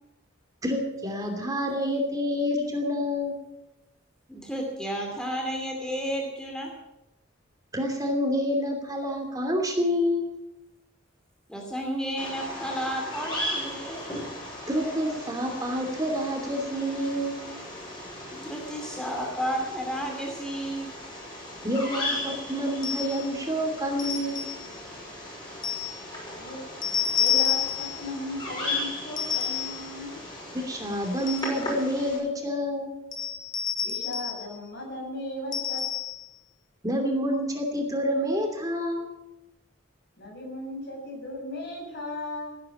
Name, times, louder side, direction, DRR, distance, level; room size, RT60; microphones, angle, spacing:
voice 1, 0.6-3.3 7.7-10.3 14.7-17.4 21.6-24.4 30.6-32.9 36.8-39.1, equal, 20° right, 2 dB, 2.8 m, -28 dB
voice 2, 4.3-6.7 11.5-14.0 18.3-20.9, equal, 5° left, 1 dB, 2.5 m, -32 dB
Bird vocalization bird call bird song, 12.2-32.2, left 1 dB, 25° left, 6.0 m, -37 dB
sound 1, 22.8-23.2 24.0-24.6 25.6-26.0 26.8-28.0 29.2-29.8 30.9-31.6 33.1-34.4 35.5-36.2, left 9 dB, 75° left, 2.9 m, -29 dB
voice 3, 26.3-26.6 27.2-30.2 33.8-35.9 40.2-42.6, left 1 dB, 55° left, 0 dB, 7.3 m, -36 dB
17.0 x 9.5 x 8.5 m, 0.95 s
head